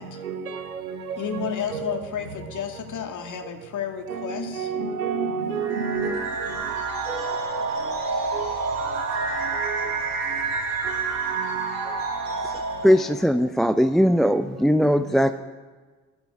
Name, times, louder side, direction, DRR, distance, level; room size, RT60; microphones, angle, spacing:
voice 1, 0.2-2.0 4.1-6.6 7.1-7.4 8.3-8.5 9.4-9.8 10.3-10.4 10.8-11.0 11.3-11.6 12.9-13.1 13.4-13.5 15.1-15.2, right 6 dB, 85° right, 0.9 m, -31 dB
voice 2, 1.2-4.7, left 7 dB, 45° left, 2.0 m, -32 dB
sound 1, 5.6-13.2, right 4 dB, 50° right, 3.6 m, -28 dB
voice 3, 12.8-15.4, equal, ahead, 0.5 m, -19 dB
15.0 x 10.0 x 8.5 m
figure-of-eight pair, 45°, 42 cm